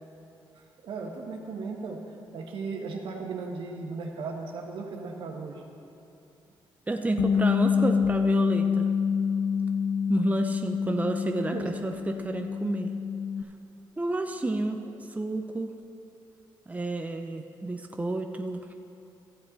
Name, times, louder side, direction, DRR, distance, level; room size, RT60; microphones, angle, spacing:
voice 1, 0.8-2.0 2.3-5.6 11.4-11.8, right 4 dB, 75° right, 1 dB, 1.3 m, -36 dB
voice 2, 6.9-8.9 10.1-12.9 14.0-14.8 15.1-15.7 16.7-18.6, right 2 dB, 15° right, 4 dB, 0.6 m, -30 dB
Bass guitar, 7.2-13.4, left 6 dB, 80° left, 0.5 m, -27 dB
14.0 x 7.5 x 4.0 m, 2.8 s
cardioid pair, 70°, 9 cm